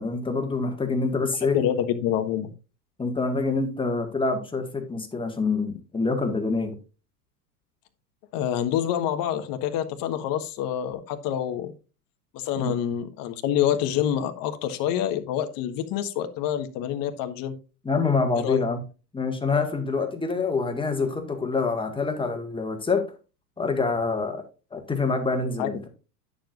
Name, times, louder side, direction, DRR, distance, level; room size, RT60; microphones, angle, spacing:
voice 1, 0.0-1.7 3.0-6.8 12.6-12.8 17.8-18.8 19.1-23.1 23.6-24.4 24.7-25.9, left 4 dB, 10° left, 1.8 m, -26 dB
voice 2, 1.5-2.5 8.3-11.7 12.3-17.6 18.3-18.6 25.6-25.7, left 10 dB, 45° left, 1.5 m, -27 dB
10.0 x 7.2 x 2.6 m
hypercardioid pair, 105°, 47 cm